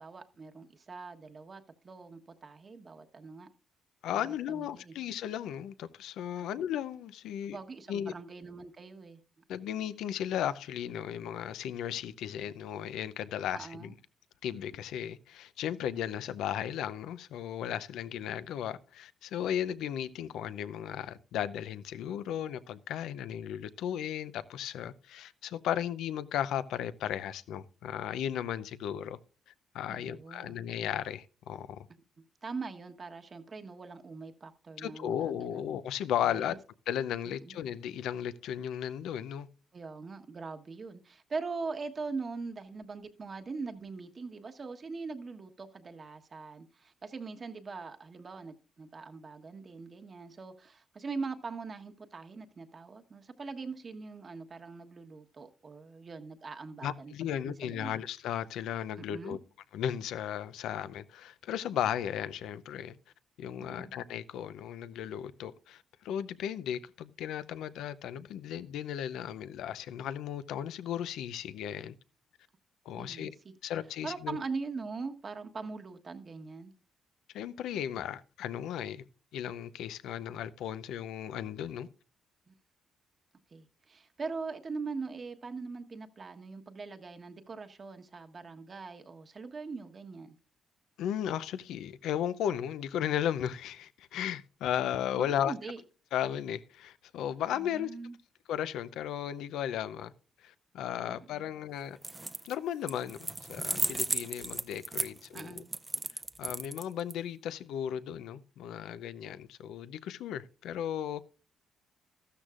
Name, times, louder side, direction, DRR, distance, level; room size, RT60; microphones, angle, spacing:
voice 1, 0.0-3.5 4.2-4.9 6.4-6.5 7.5-9.2 13.5-14.0 29.9-30.6 32.2-35.6 36.2-36.6 37.2-37.6 39.7-58.0 59.0-59.4 63.6-63.9 73.0-73.5 74.0-76.7 82.5-82.6 83.5-90.3 95.2-95.8 97.5-98.2 101.0-101.5 105.3-105.7, right 4 dB, 40° right, 1.2 m, -42 dB
voice 2, 4.0-7.6 7.9-8.1 9.5-13.9 14.4-29.2 29.7-31.9 34.8-36.6 36.9-39.5 56.8-59.4 59.7-63.0 63.4-71.9 72.9-73.3 73.6-74.4 77.3-79.0 79.3-81.9 91.0-95.5 96.1-97.9 98.5-100.1 100.4-102.0 102.4-105.6 106.4-111.2, left 10 dB, 85° left, 0.6 m, -35 dB
sound 1, 102.0-102.5 102.9-107.1, right 2 dB, 20° right, 0.6 m, -34 dB
13.5 x 12.5 x 2.5 m
cardioid pair, 90°, 0 cm